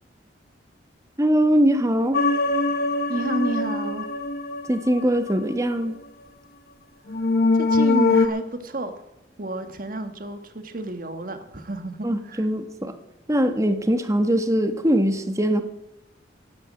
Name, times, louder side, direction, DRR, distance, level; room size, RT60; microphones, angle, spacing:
voice 1, 1.2-2.2 4.7-6.0 12.0-12.9 13.3-15.6, equal, 15° right, 8 dB, 1.2 m, -21 dB
sound 1, 2.1-5.5 7.1-8.3, left 3 dB, 50° left, 1.0 m, -22 dB
voice 2, 3.1-4.1 7.2-7.3 7.5-9.0 9.4-12.5, right 1 dB, 45° right, 8 dB, 1.5 m, -30 dB
12.0 x 10.5 x 8.7 m, 0.91 s
head